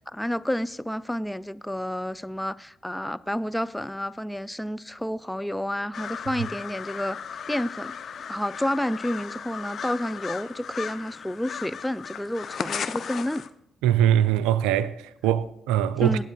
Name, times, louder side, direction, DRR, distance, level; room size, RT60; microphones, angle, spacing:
voice 1, 0.1-7.2 7.5-7.9 8.3-13.4 16.0-16.2, left 1 dB, 5° left, 0.4 m, -30 dB
sound 1, 5.9-13.5, left 7 dB, 55° left, 0.5 m, -36 dB
voice 2, 13.8-16.2, right 10 dB, 75° right, 0.4 m, -22 dB
21.5 x 9.2 x 2.3 m
hypercardioid pair, 45°, 0 cm